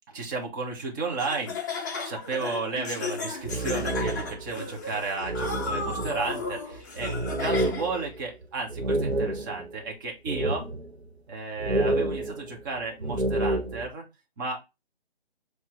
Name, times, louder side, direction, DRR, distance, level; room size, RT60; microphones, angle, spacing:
voice 1, 0.1-7.1 7.4-10.7 11.3-14.0 14.4-14.6, right 3 dB, 20° right, 1 dB, 1.5 m, -33 dB
Laughter, 1.2-8.0, left 4 dB, 20° left, 0.7 m, -34 dB
sound 1, 3.2-4.5 4.9-5.0 5.2-9.7 10.3-11.1 11.6-13.9, right 2 dB, 90° right, 1.3 m, -29 dB
7.7 x 3.3 x 4.6 m, 0.24 s
figure-of-eight pair, 145°, 31 cm